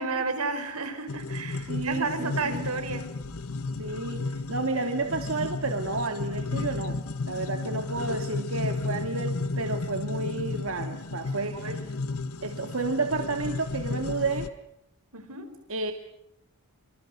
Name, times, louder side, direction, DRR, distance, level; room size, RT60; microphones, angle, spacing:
voice 1, 0.0-3.1 11.5-11.8 15.1-15.5, right 3 dB, 90° right, 9 dB, 5.2 m, -32 dB
sound 1, 1.1-14.5, left 3 dB, 80° left, 1.3 m, -33 dB
voice 2, 1.7-2.7 3.8-11.8 12.4-14.5 15.7-15.9, right 3 dB, 65° right, 6 dB, 2.2 m, -31 dB
26.5 x 26.0 x 6.7 m, 0.81 s
head